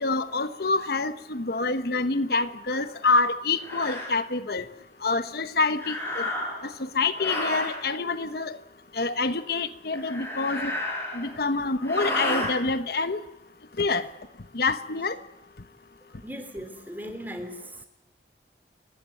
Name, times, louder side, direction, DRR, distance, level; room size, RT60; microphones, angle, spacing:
voice 1, 0.0-4.6 5.0-6.2 6.9-8.6 8.9-10.7 11.1-13.2 13.8-14.1 14.5-15.2, left 3 dB, 60° left, 11 dB, 1.0 m, -26 dB
sound 1, 2.7-2.8 3.6-4.1 5.7-6.7 7.1-7.8 9.9-11.4 11.8-12.5, left 1 dB, 15° left, 6.5 m, -31 dB
voice 2, 16.2-17.9, equal, 10° right, 7 dB, 3.4 m, -38 dB
29.5 x 15.5 x 9.0 m, 0.90 s
head